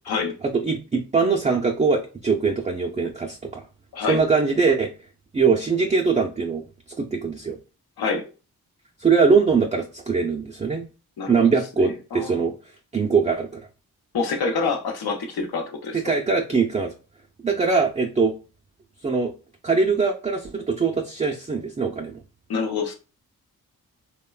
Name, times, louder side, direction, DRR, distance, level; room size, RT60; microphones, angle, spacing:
voice 1, 0.5-3.7 4.1-4.9 5.3-6.6 7.0-7.6 9.0-10.9 11.3-12.5 12.9-13.6 15.9-16.9 17.4-18.3 19.0-19.3 19.6-22.2, right 5 dB, 20° right, 0.4 m, -22 dB
voice 2, 11.8-12.5 14.1-16.0 22.5-22.9, left 4 dB, 75° left, 0.7 m, -27 dB
3.0 x 2.1 x 2.2 m
cardioid pair, 45°, 37 cm